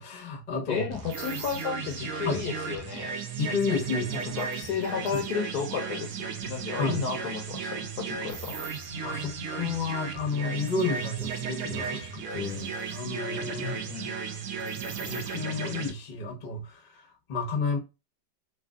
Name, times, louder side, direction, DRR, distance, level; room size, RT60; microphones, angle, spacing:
voice 1, 0.0-1.0 2.2-2.4 3.4-4.2 5.1-5.2 6.8-7.0 9.0-13.9 14.6-14.7 15.0-17.8, left 4 dB, 40° left, 0.7 m, -31 dB
voice 2, 0.7-3.2 4.1-6.2 6.5-8.6 13.6-14.2, left 6 dB, 70° left, 1.0 m, -33 dB
sound 1, 0.9-15.9, right 6 dB, 65° right, 0.9 m, -35 dB
sound 2, 1.1-1.7 3.6-5.3 8.3-8.9 10.7-11.4 11.8-11.9 12.7-13.0 14.6-15.4, right 7 dB, 90° right, 1.4 m, -44 dB
3.3 x 2.7 x 2.3 m
omnidirectional pair, 2.1 m